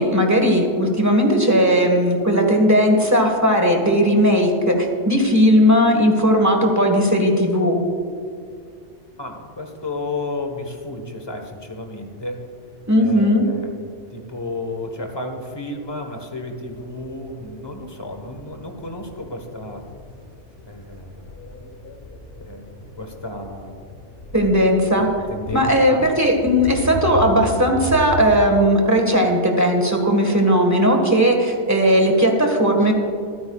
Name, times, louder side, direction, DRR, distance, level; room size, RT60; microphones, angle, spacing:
voice 1, 0.0-7.8 12.9-13.4 24.3-25.1 25.5-32.9, equal, 15° right, 2 dB, 1.5 m, -17 dB
voice 2, 9.2-12.4 13.0-13.7 14.1-19.8 20.6-21.2 22.4-22.7 23.0-23.8 24.9-26.1, left 2 dB, 20° left, 4 dB, 1.3 m, -32 dB
sound 1, 16.7-28.5, left 1 dB, 55° left, 1.4 m, -35 dB
25.5 x 9.3 x 2.4 m, 2.2 s
omnidirectional pair, 1.2 m